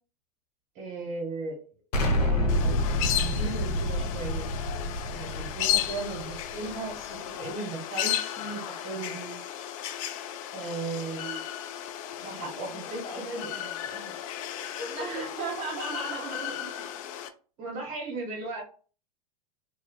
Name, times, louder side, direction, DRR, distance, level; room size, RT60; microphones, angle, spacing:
voice 1, 0.7-1.6 2.1-2.8 3.1-4.5 5.1-9.4 10.5-11.4 12.2-13.5 14.8-16.9 17.6-18.6, right 3 dB, 55° right, 0 dB, 1.4 m, -36 dB
Explosion, 1.9-6.8, left 1 dB, 80° left, 0.8 m, -28 dB
sound 1, 2.5-17.3, left 11 dB, 55° left, 0.4 m, -34 dB
voice 2, 12.2-14.2 14.6-15.3, left 1 dB, 30° left, 1 dB, 1.0 m, -43 dB
2.5 x 2.4 x 2.2 m, 0.39 s
hypercardioid pair, 100°, 20 cm